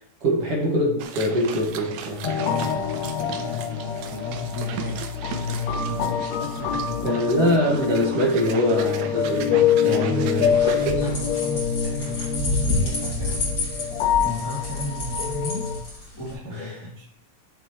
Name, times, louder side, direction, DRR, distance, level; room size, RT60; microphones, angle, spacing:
voice 1, 0.2-2.4 7.0-10.5 10.8-11.1 16.5-16.8, equal, 55° right, -3 dB, 2.5 m, -23 dB
Drink Shuffle, 1.0-11.0, right 7 dB, 75° right, 1.9 m, -38 dB
sound 1, 2.2-15.8, left 8 dB, 70° left, 2.0 m, -26 dB
voice 2, 2.4-7.2 9.8-15.7 16.1-17.1, left 2 dB, 10° left, -6 dB, 1.8 m, -35 dB
sound 2, 10.3-16.3, left 2 dB, 45° left, 3.6 m, -29 dB
11.0 x 7.1 x 3.1 m, 0.69 s
omnidirectional pair, 3.4 m